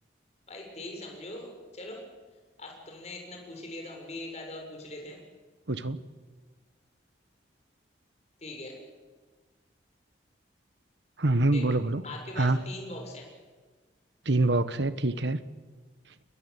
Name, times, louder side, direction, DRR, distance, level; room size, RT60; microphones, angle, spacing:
voice 1, 0.5-2.0 2.6-5.2 8.4-8.8 11.5-11.8 12.0-13.3, left 2 dB, 35° left, 1 dB, 7.0 m, -41 dB
voice 2, 5.7-6.0 11.2-12.0 12.4-12.6 14.2-15.4, right 2 dB, 70° right, 14 dB, 1.3 m, -25 dB
29.0 x 22.0 x 8.3 m, 1.4 s
head